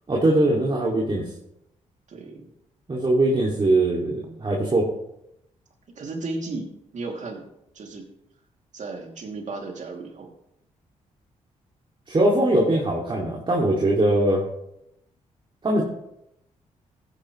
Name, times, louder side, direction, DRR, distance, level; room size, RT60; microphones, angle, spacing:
voice 1, 0.1-1.3 2.9-4.9 12.1-14.5 15.6-15.8, right 1 dB, 35° right, -3 dB, 2.5 m, -21 dB
voice 2, 2.1-2.5 6.0-7.4 7.7-8.1 8.7-10.3, right 3 dB, 60° right, 1 dB, 2.8 m, -34 dB
14.5 x 9.9 x 3.2 m, 0.81 s
supercardioid pair, 60°, 14 cm